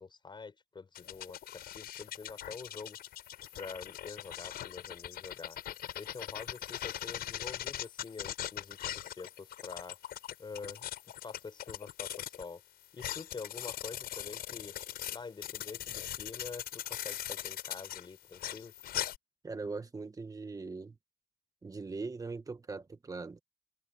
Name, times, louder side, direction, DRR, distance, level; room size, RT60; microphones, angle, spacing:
voice 1, 0.0-1.4 1.7-3.0 3.5-5.6 6.0-10.0 10.4-10.9 11.2-12.6 12.9-14.7 15.1-18.7, left 4 dB, 25° left, 7.0 m, -46 dB
sound 1, 0.9-12.5 12.9-19.2, left 12 dB, 65° left, 5.7 m, -41 dB
voice 2, 19.4-21.0 21.6-23.4, right 4 dB, 20° right, 1.8 m, -40 dB
open air
cardioid pair, 110°, 17 cm